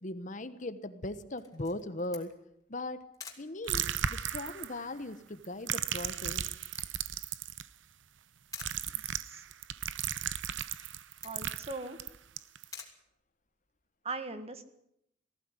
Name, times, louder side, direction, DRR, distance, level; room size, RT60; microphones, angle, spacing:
voice 1, 0.0-2.3 2.7-3.0 3.4-6.4, left 2 dB, 40° left, 12 dB, 1.2 m, -39 dB
Camera, 1.4-13.9, left 6 dB, 20° left, 2.9 m, -54 dB
sound 1, 3.6-5.0 5.4-7.7 8.5-12.6, right 9 dB, 80° right, 0.8 m, -35 dB
voice 2, 8.9-9.4 11.2-12.0 14.0-14.6, right 3 dB, 35° right, 9 dB, 1.7 m, -40 dB
19.0 x 15.5 x 9.8 m, 0.77 s
head